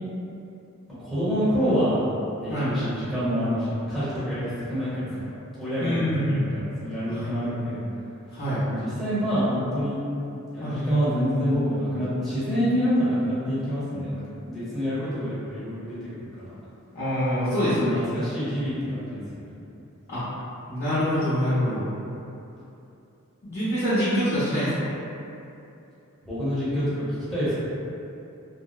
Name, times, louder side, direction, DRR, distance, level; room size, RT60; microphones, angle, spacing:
voice 1, 1.1-2.1 2.4-5.3 5.6-7.8 8.7-10.0 10.5-16.1 16.4-16.5 17.5-19.4 26.2-27.0 27.3-27.5, equal, ahead, -14 dB, 0.8 m, -27 dB
voice 2, 5.8-6.5 7.1-7.3 8.3-8.6 10.6-11.0 16.9-18.1 20.1-20.2 20.7-21.8 23.4-24.9, equal, 45° left, -15 dB, 0.7 m, -25 dB
2.6 x 2.1 x 2.3 m, 2.8 s
head